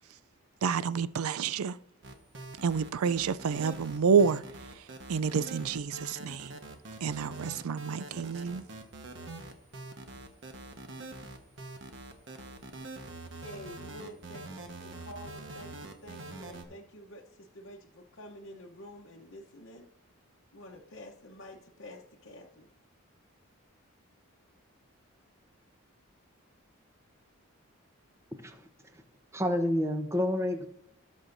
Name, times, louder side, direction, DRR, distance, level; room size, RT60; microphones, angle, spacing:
voice 1, 0.6-1.8 2.6-4.4 5.1-6.5 7.0-8.6, right 6 dB, 80° right, 0.4 m, -28 dB
sound 1, 2.0-16.6, right 2 dB, 55° right, 1.2 m, -44 dB
voice 2, 13.4-19.9 20.5-22.7, left 1 dB, 55° left, 0.9 m, -49 dB
voice 3, 29.3-30.7, left 1 dB, 15° right, 0.8 m, -29 dB
18.0 x 6.4 x 2.6 m
head